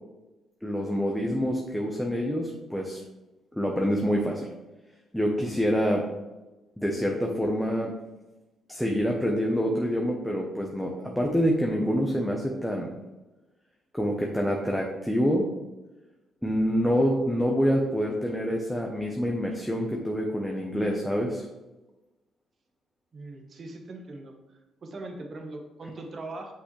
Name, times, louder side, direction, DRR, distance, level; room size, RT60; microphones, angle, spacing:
voice 1, 0.6-3.0 3.6-4.5 5.1-6.0 6.8-7.9 8.7-12.9 13.9-15.4 16.4-21.5, equal, 5° left, 0 dB, 0.9 m, -26 dB
voice 2, 23.1-24.3 24.8-26.5, right 2 dB, 45° right, 3 dB, 1.2 m, -40 dB
6.1 x 5.7 x 3.2 m, 1.1 s
cardioid pair, 90°, 0 cm